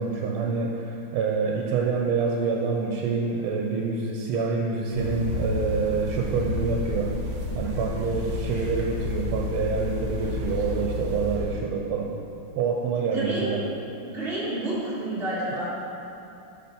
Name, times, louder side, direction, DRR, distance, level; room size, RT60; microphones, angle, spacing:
voice 1, 0.0-7.1 7.6-12.1 12.6-13.6 15.5-15.7, right 5 dB, 90° right, 0 dB, 1.5 m, -27 dB
sound 1, 4.9-11.6, left 2 dB, 60° right, 1.7 m, -31 dB
voice 2, 13.0-13.6 14.0-15.7, right 1 dB, 30° right, -8 dB, 1.7 m, -30 dB
8.4 x 4.0 x 5.6 m, 2.7 s
omnidirectional pair, 2.3 m